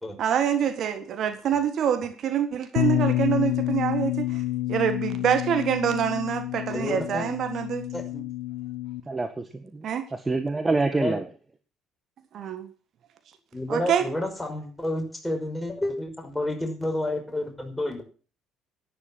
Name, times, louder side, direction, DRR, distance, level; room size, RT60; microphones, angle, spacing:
voice 1, 0.2-4.4 4.7-7.8 9.8-10.0 12.3-12.7 13.7-14.0, right 9 dB, 55° right, 1.7 m, -26 dB
Bass guitar, 2.8-9.0, left 16 dB, 70° left, 0.8 m, -28 dB
voice 2, 6.7-7.3 7.9-8.2 10.7-11.2 13.5-18.0, left 1 dB, 10° left, 5.6 m, -30 dB
voice 3, 9.1-11.2, right 3 dB, 20° right, 1.5 m, -27 dB
11.0 x 10.5 x 7.6 m
figure-of-eight pair, 50°, 0 cm